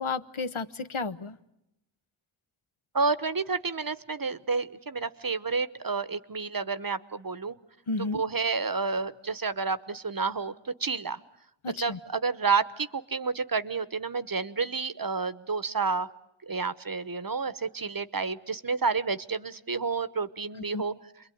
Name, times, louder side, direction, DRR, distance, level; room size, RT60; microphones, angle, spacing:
voice 1, 0.0-1.4 7.9-8.2 11.6-12.0 20.7-20.8, left 3 dB, 75° left, 11 dB, 1.2 m, -32 dB
voice 2, 2.9-7.6 8.0-11.2 11.8-16.1 16.5-20.9, right 4 dB, 45° right, 14 dB, 1.0 m, -30 dB
28.5 x 22.5 x 9.3 m, 0.84 s
wide cardioid pair, 70°, 49 cm